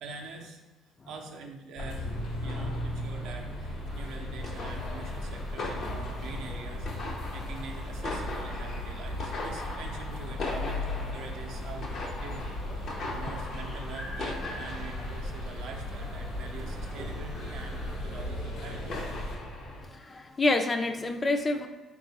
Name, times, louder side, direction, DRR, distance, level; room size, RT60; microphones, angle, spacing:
voice 1, 0.0-0.6 1.1-12.6 13.1-19.1, right 4 dB, 75° right, 2 dB, 0.5 m, -45 dB
sound 1, 1.8-19.4, left 1 dB, 85° left, 0.9 m, -37 dB
sound 2, 1.9-19.9, left 2 dB, 60° left, 0.7 m, -40 dB
sound 3, 4.4-18.0, right 1 dB, 30° right, 0.6 m, -49 dB
voice 2, 19.9-21.7, left 2 dB, 30° left, 6 dB, 0.4 m, -27 dB
3.8 x 2.4 x 3.8 m, 1.2 s
supercardioid pair, 80°, 0 cm